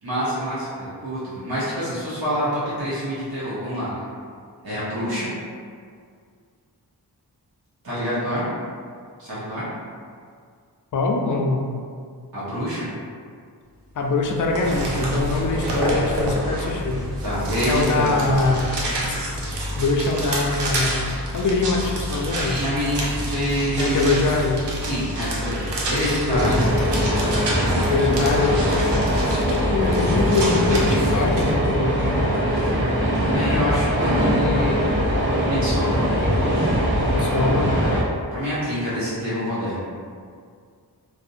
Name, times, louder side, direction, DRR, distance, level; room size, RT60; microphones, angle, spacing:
voice 1, 0.0-4.0 4.6-5.3 7.8-8.5 9.2-9.7 12.3-12.9 17.2-18.2 22.4-24.1 24.8-26.6 27.6-27.8 32.1-32.8 33.1-36.0 38.3-39.8, equal, 60° right, -11 dB, 0.9 m, -27 dB
voice 2, 10.9-11.7 14.0-17.0 17.7-18.8 19.1-19.2 19.8-22.6 23.8-24.7 26.3-26.6 27.9-28.8 29.7-32.0 37.0-37.7, left 3 dB, 50° left, 1 dB, 0.4 m, -23 dB
sound 1, 14.2-31.5, equal, 85° right, 0.6 m, -27 dB
sound 2, 26.3-38.0, equal, 30° right, 0.9 m, -21 dB
2.4 x 2.0 x 2.6 m, 2.1 s
cardioid pair, 50°, 41 cm